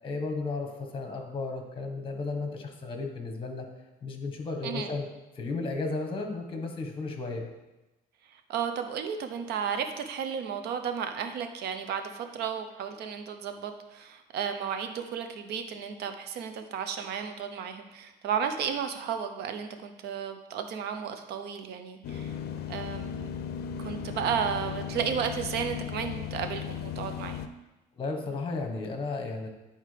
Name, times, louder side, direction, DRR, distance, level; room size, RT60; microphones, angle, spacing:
voice 1, 0.0-3.7 4.0-5.1 5.4-7.5 28.0-29.5, left 3 dB, 30° left, 3 dB, 1.3 m, -34 dB
voice 2, 8.3-22.3 22.7-23.3 23.8-27.4, right 7 dB, 75° right, 7 dB, 0.8 m, -33 dB
sound 1, 22.0-27.5, left 8 dB, 70° left, 0.5 m, -36 dB
10.0 x 4.3 x 3.4 m, 1.0 s
cardioid pair, 110°, 17 cm